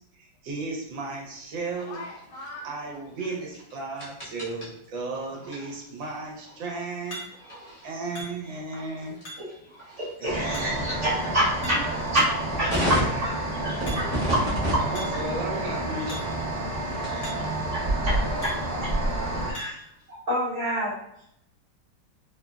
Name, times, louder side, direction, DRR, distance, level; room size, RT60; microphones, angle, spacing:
voice 1, 0.1-2.0 2.4-7.2 7.8-9.1 10.2-11.1 12.5-13.0 14.8-16.4, right 3 dB, 75° right, -2 dB, 1.4 m, -35 dB
sound 1, 1.2-1.3 1.8-2.7 7.1-7.6 8.2-8.7 9.3-9.7 10.5-11.0 11.6-12.0 12.5-13.1 13.9-14.3 15.0-15.3 16.1-16.4 16.7-16.8 17.2-17.6 18.4-18.8 19.5-19.9, equal, 85° left, 1.8 m, -41 dB
sound 2, 1.7-17.5 17.9-20.0, equal, 25° left, 0.6 m, -36 dB
voice 2, 10.0-11.8 12.1-12.3 12.6-13.3 13.6-14.0 14.7-14.8 17.0-18.1 19.5-19.7 20.1-20.9, right 1 dB, 45° right, -8 dB, 1.2 m, -28 dB
sound 3, 10.2-19.5, right 1 dB, 25° right, 0.8 m, -29 dB
voice 3, 11.6-12.1 12.6-13.1 13.6-14.1 18.0-19.5, left 1 dB, 70° left, -5 dB, 1.0 m, -40 dB
3.7 x 2.0 x 2.3 m, 0.77 s
omnidirectional pair, 2.1 m